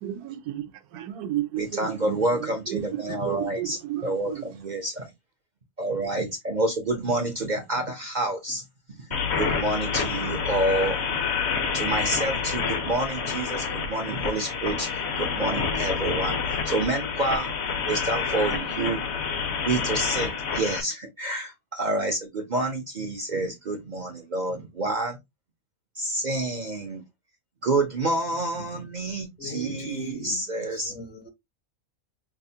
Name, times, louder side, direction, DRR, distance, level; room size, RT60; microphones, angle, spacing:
voice 1, 0.0-4.5, right 13 dB, 80° right, 1.1 m, -33 dB
voice 2, 1.6-5.1 5.8-9.1 9.4-11.2 11.7-17.5 17.9-19.0 19.7-25.2 26.0-27.0 27.6-30.9, right 2 dB, 55° right, 0.5 m, -28 dB
sound 1, 9.1-20.8, left 5 dB, 55° left, 0.9 m, -28 dB
voice 3, 29.4-31.3, right 1 dB, 70° left, 1.8 m, -38 dB
5.9 x 2.0 x 2.7 m
omnidirectional pair, 1.6 m